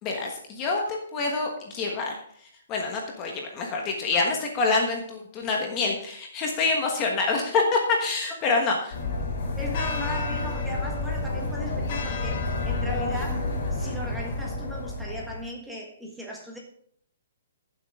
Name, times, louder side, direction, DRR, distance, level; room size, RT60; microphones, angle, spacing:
voice 1, 0.0-8.8, left 3 dB, 20° left, 1 dB, 1.3 m, -26 dB
sound 1, 8.9-15.4, left 2 dB, 35° left, 3.3 m, -29 dB
voice 2, 9.6-16.6, left 1 dB, ahead, -2 dB, 1.6 m, -37 dB
15.0 x 7.5 x 3.7 m, 0.63 s
hypercardioid pair, 170°, 0 cm